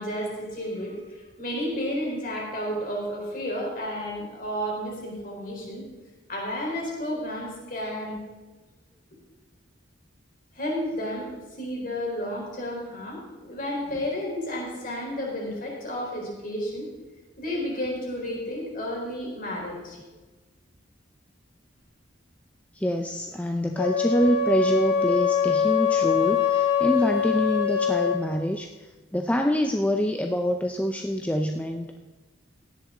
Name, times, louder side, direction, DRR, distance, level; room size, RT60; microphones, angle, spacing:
voice 1, 0.0-5.8 6.3-8.2 10.5-11.3 11.6-16.9 17.4-20.0, equal, 45° left, -2 dB, 4.2 m, -32 dB
voice 2, 22.7-32.0, equal, 5° left, 4 dB, 0.5 m, -26 dB
Wind instrument woodwind instrument, 23.7-28.2, left 7 dB, 90° left, 3.9 m, -23 dB
16.5 x 10.5 x 3.8 m, 1.2 s
head